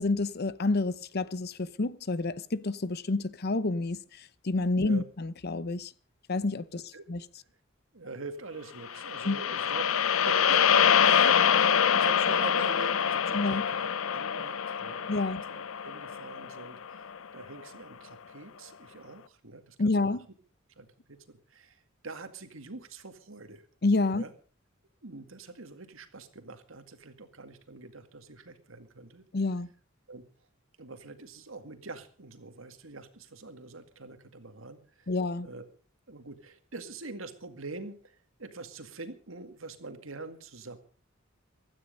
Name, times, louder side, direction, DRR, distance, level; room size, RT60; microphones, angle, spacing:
voice 1, 0.0-5.9 6.3-7.2 9.3-9.4 13.3-13.6 15.1-15.4 19.8-20.3 23.8-24.2 29.3-29.7 35.1-35.5, left 3 dB, 55° left, 0.8 m, -29 dB
voice 2, 4.7-5.0 6.9-7.0 7.9-19.8 20.1-20.2 20.8-23.6 24.1-24.3 25.0-29.3 30.1-30.3 30.8-35.1 35.4-35.6 36.1-40.8, right 3 dB, 80° right, 2.1 m, -44 dB
sound 1, 8.9-17.2, left 8 dB, 85° left, 0.6 m, -25 dB
16.0 x 13.0 x 5.3 m
head